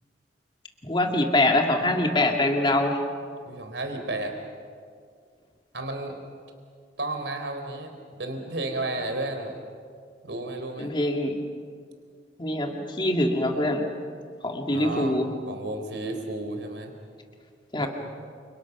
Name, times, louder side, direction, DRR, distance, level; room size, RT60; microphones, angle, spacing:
voice 1, 0.8-3.0 10.8-11.4 12.4-13.9 14.4-15.3 17.7-17.9, left 1 dB, 25° left, 2 dB, 2.3 m, -24 dB
voice 2, 3.4-4.3 5.7-6.2 7.0-7.9 8.2-9.5 10.2-10.9 14.7-16.9 17.8-17.9, right 2 dB, 80° right, 5 dB, 4.0 m, -32 dB
30.0 x 27.5 x 6.1 m, 2.1 s
head